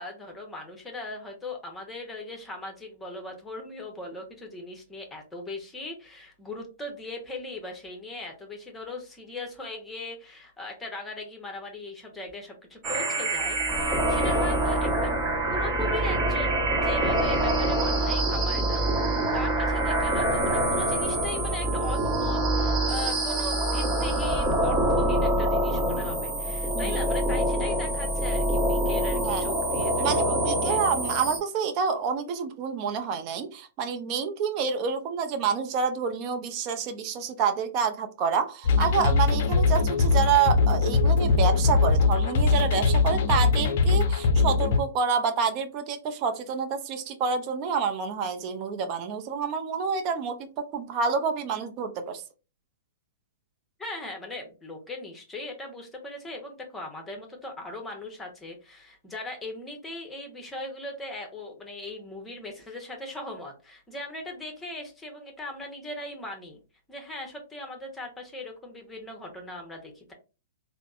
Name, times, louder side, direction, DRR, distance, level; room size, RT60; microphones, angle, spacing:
voice 1, 0.0-15.1 15.5-30.8 53.8-66.6 66.9-70.1, left 2 dB, 10° left, 3 dB, 0.9 m, -39 dB
sound 1, 12.8-31.4, right 1 dB, 20° right, 1.2 m, -25 dB
voice 2, 30.0-52.2, right 6 dB, 35° right, 7 dB, 0.5 m, -28 dB
sound 2, 38.6-44.8, left 4 dB, 55° left, 0.5 m, -22 dB
3.3 x 2.0 x 2.5 m, 0.32 s
hypercardioid pair, 115°, 0 cm